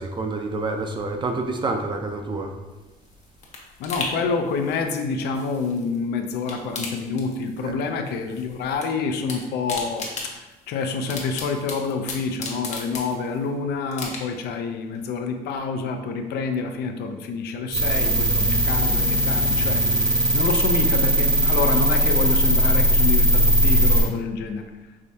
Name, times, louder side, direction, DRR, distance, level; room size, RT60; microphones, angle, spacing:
voice 1, 0.0-2.5 7.6-7.7, right 3 dB, 30° right, 4 dB, 0.5 m, -28 dB
sound 1, 2.7-6.0 6.3-7.8 8.1-8.9 9.1-13.5 13.9-14.5 14.9-15.0, left 3 dB, 45° left, 0.9 m, -36 dB
voice 2, 3.8-24.7, left 4 dB, 75° left, 5 dB, 0.5 m, -27 dB
sound 2, 17.7-24.0, equal, 60° right, 1.4 m, -19 dB
4.8 x 3.2 x 2.7 m, 1.1 s
cardioid pair, 110°, 17 cm